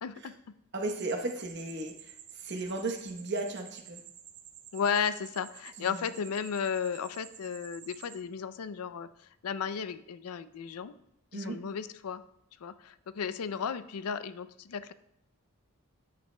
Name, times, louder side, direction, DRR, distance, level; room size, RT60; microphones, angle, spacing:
voice 1, 0.0-0.3 4.7-10.9 11.3-12.2 12.6-14.9, left 6 dB, 90° left, 13 dB, 0.4 m, -34 dB
voice 2, 0.7-4.0 5.8-6.0 11.3-11.6, right 2 dB, 50° right, 3 dB, 1.0 m, -35 dB
sound 1, 0.9-8.2, right 10 dB, 85° right, 0.6 m, -51 dB
10.0 x 8.6 x 2.2 m, 0.77 s
head